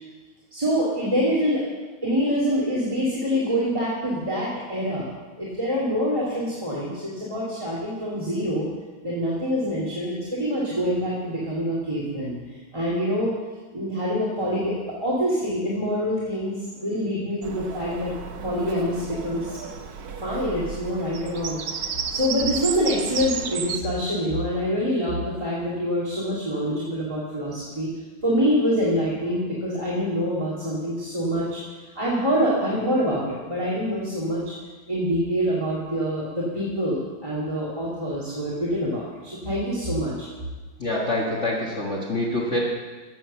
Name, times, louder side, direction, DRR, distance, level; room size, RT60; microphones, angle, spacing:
voice 1, 0.5-1.6 2.0-5.1 5.4-8.7 9.0-12.3 12.7-13.3 13.7-18.1 18.4-19.6 20.2-27.9 28.2-31.6 32.0-34.5 34.9-40.1, equal, 15° right, -7 dB, 2.2 m, -25 dB
Bird vocalization bird call bird song, 17.4-23.8, right 6 dB, 60° right, 1.1 m, -33 dB
voice 2, 40.8-42.6, left 1 dB, 35° left, -4 dB, 1.8 m, -26 dB
11.0 x 7.7 x 7.3 m, 1.3 s
omnidirectional pair, 2.2 m